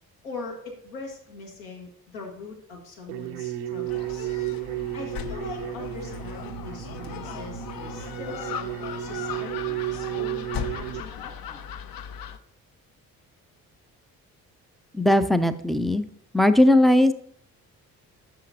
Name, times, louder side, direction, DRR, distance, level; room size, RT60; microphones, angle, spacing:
voice 1, 0.2-4.3 4.9-11.7, left 3 dB, 75° left, 0 dB, 1.6 m, -41 dB
sound 1, 3.1-11.0, right 13 dB, 80° right, 0.6 m, -33 dB
Gull seagull, 3.8-12.4, left 8 dB, 50° left, 0.6 m, -37 dB
voice 2, 14.9-16.1 16.3-17.1, left 1 dB, ahead, 9 dB, 0.4 m, -18 dB
10.0 x 6.5 x 2.7 m, 0.68 s
figure-of-eight pair, 40°, 45 cm